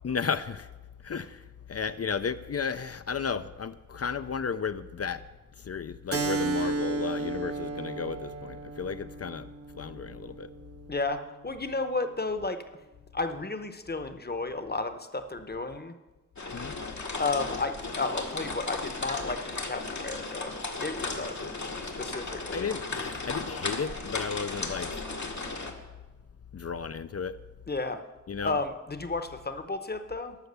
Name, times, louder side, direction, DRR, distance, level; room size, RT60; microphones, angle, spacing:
voice 1, 0.0-0.7 1.0-1.4 1.7-5.2 5.6-9.5 9.8-10.5 16.5-16.7 22.5-24.9 26.5-27.4 28.3-28.6, left 6 dB, 55° left, 11 dB, 0.4 m, -33 dB
Keyboard (musical), 6.1-11.2, right 3 dB, 50° right, 1.0 m, -34 dB
voice 2, 10.9-12.6 13.1-15.9 17.2-22.7 27.7-28.0 28.4-30.4, left 3 dB, 35° left, 9 dB, 0.8 m, -33 dB
sound 1, 16.4-25.7, left 3 dB, 75° left, 1.4 m, -35 dB
13.0 x 5.9 x 6.8 m, 1.2 s
wide cardioid pair, 65°, 29 cm